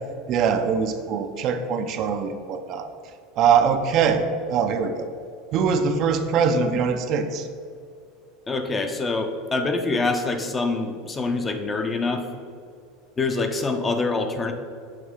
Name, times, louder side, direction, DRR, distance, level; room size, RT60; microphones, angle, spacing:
voice 1, 0.3-2.9 3.4-5.1 5.5-7.5, right 6 dB, 50° right, 7 dB, 0.5 m, -22 dB
voice 2, 8.5-12.3 13.2-14.5, left 3 dB, 20° left, 5 dB, 0.6 m, -25 dB
7.4 x 3.2 x 4.8 m, 2.3 s
supercardioid pair, 110°, 0 cm